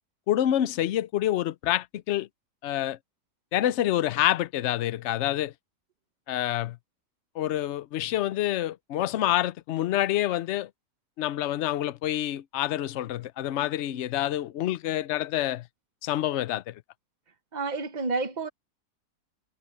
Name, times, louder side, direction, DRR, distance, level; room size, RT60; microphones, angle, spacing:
voice 1, 0.3-2.3 2.6-3.0 3.5-5.5 6.3-6.8 7.4-10.7 11.2-15.7 16.0-16.8, left 13 dB, 60° left, 0.8 m, -27 dB
voice 2, 17.5-18.5, right 3 dB, 35° right, 0.8 m, -29 dB
omnidirectional pair, 1.7 m